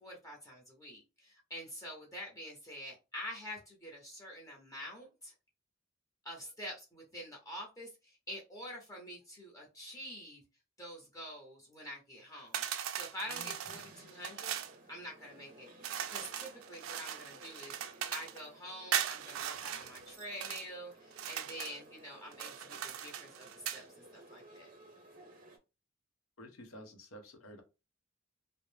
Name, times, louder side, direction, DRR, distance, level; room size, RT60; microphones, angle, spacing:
voice 1, 0.0-5.3 6.2-10.4 10.8-12.6 12.9-14.6 14.9-15.7 16.1-17.7 18.1-23.9 24.1-24.7, equal, 15° left, 0.6 m, -47 dB
sound 1, 12.5-14.7 15.8-18.4 18.9-20.7 21.1-21.8 22.3-23.8, right 9 dB, 75° right, 0.3 m, -39 dB
sound 2, 13.4-25.6, right 1 dB, 40° right, 0.6 m, -57 dB
voice 2, 26.4-27.6, equal, 90° left, 0.7 m, -51 dB
2.4 x 2.0 x 3.1 m
head